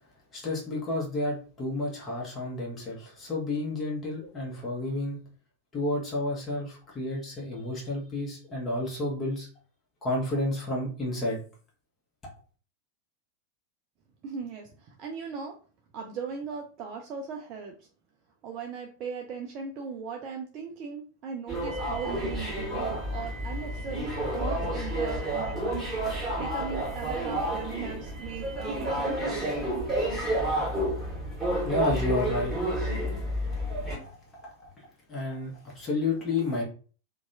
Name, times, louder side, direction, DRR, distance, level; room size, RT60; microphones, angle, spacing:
voice 1, 0.3-5.2 5.7-9.5 10.0-11.4 31.6-32.5 33.6-36.6, left 2 dB, 20° left, -4 dB, 1.0 m, -31 dB
voice 2, 14.2-15.6 15.9-17.9 18.4-25.9 26.4-29.6, right 6 dB, 35° right, 2 dB, 0.4 m, -38 dB
sound 1, 21.5-34.0, right 1 dB, 10° right, 1.4 m, -30 dB
2.6 x 2.2 x 2.6 m, 0.38 s
figure-of-eight pair, 90°, 0 cm